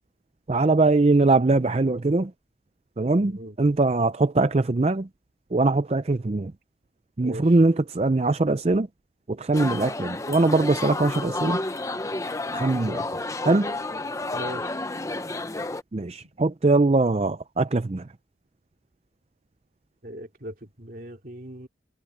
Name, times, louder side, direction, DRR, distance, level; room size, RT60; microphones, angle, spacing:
voice 1, 0.5-2.3 3.0-5.1 5.5-6.5 7.2-8.9 9.3-11.6 12.5-13.7 15.9-18.1, right 3 dB, 35° right, 0.5 m, -22 dB
voice 2, 3.2-3.6 7.2-7.5 14.3-14.8 16.2-16.3 20.0-21.7, equal, 50° right, 2.9 m, -39 dB
sound 1, 9.5-15.8, left 2 dB, 15° left, 0.7 m, -31 dB
head